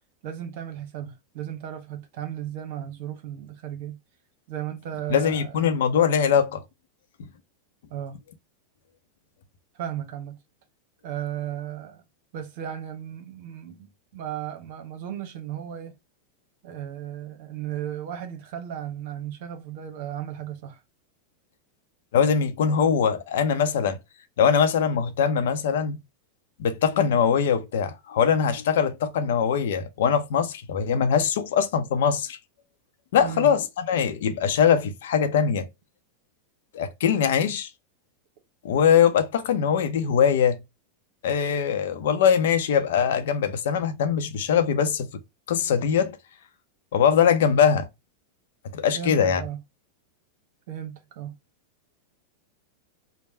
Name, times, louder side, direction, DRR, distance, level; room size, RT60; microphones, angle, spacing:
voice 1, 0.2-4.0 4.5-5.6 7.9-8.2 9.7-10.4 11.0-12.0 12.3-15.9 16.6-20.8 33.2-33.6 48.9-49.6 50.7-51.4, right 10 dB, 60° right, 1.0 m, -35 dB
voice 2, 5.1-6.6 22.1-24.0 24.4-26.0 26.6-32.4 33.1-35.7 36.7-37.7 38.6-40.6 41.2-45.1 45.5-46.2 46.9-47.9 48.7-49.4, left 7 dB, 75° left, 0.7 m, -22 dB
3.4 x 2.2 x 4.3 m
hypercardioid pair, 110°, 0 cm